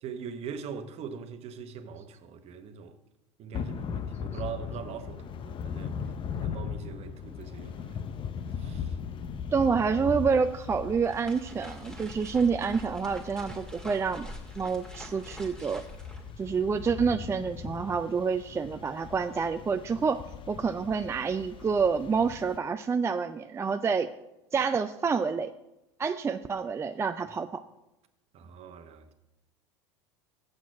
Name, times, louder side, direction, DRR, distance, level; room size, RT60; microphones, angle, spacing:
voice 1, 0.0-3.0 3.4-6.0 6.3-8.1 8.6-9.3 16.2-16.6 28.3-29.1, right 7 dB, 45° right, 1.0 m, -42 dB
Thunder / Rain, 3.5-22.6, left 7 dB, 35° left, 0.7 m, -39 dB
voice 2, 9.5-14.3 14.6-15.8 16.4-20.2 20.5-24.1 24.5-25.5 26.0-27.6, right 5 dB, 20° right, 0.4 m, -28 dB
sound 1, 10.8-17.1, equal, 5° left, 1.8 m, -47 dB
7.7 x 6.1 x 7.3 m
hypercardioid pair, 85°, 15 cm